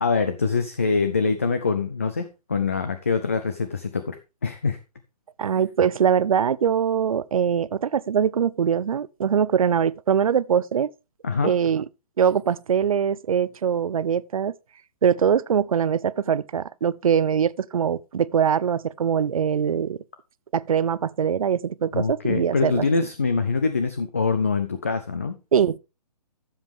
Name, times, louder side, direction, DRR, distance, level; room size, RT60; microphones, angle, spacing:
voice 1, 0.0-4.2 4.4-4.8 11.2-11.5 21.9-25.4, left 4 dB, 20° left, 0.4 m, -24 dB
voice 2, 5.4-10.9 11.4-11.9 12.2-14.5 15.0-20.0 20.5-22.9 25.5-25.8, right 8 dB, 60° right, 0.5 m, -22 dB
12.0 x 7.3 x 3.6 m
hypercardioid pair, 180°, 20 cm